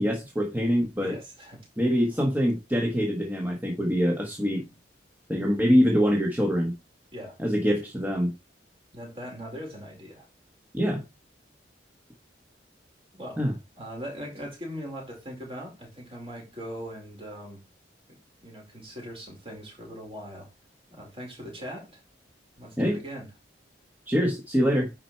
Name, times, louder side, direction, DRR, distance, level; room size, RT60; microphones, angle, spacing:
voice 1, 0.0-1.2 1.8-4.6 5.3-6.7 7.4-8.3 10.7-11.0 13.4-13.5 22.8-23.0 24.1-24.9, equal, 10° right, 1.5 m, -24 dB
voice 2, 1.0-1.6 1.9-2.0 7.1-7.4 8.9-10.3 13.1-13.4 13.8-17.6 18.1-20.5 20.9-22.0 22.6-23.3, equal, 30° right, 4.8 m, -40 dB
10.0 x 4.8 x 4.5 m
head